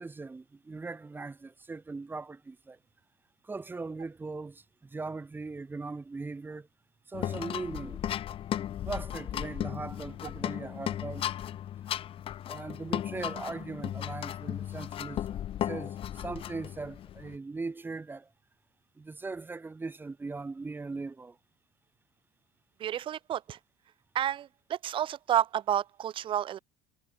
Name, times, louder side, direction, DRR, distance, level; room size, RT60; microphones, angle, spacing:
voice 1, 0.0-2.8 3.4-6.7 7.1-8.1 8.8-11.3 12.5-18.3 19.0-21.4, right 3 dB, 15° right, 6.1 m, -39 dB
sound 1, 7.1-17.4, left 11 dB, 45° left, 6.6 m, -36 dB
voice 2, 22.8-23.6 24.1-26.6, right 10 dB, 40° right, 1.2 m, -30 dB
cardioid pair, 125°, 13 cm